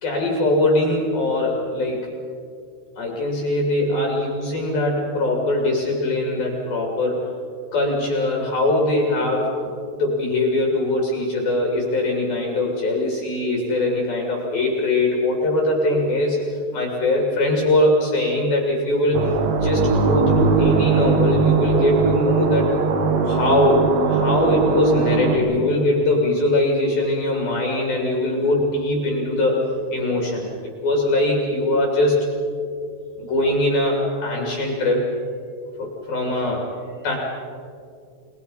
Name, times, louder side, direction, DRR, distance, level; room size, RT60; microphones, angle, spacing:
voice 1, 0.0-2.1 3.0-7.3 7.7-9.7 10.0-16.4 16.7-19.3 19.6-22.7 23.3-29.6 29.9-30.5 30.8-32.3 33.2-35.1 35.7-36.7 37.0-37.2, left 1 dB, 55° left, 0 dB, 4.2 m, -21 dB
sound 1, 19.1-25.4, right 5 dB, 80° right, 4.1 m, -20 dB
30.0 x 20.5 x 5.6 m, 2.3 s
omnidirectional pair, 5.3 m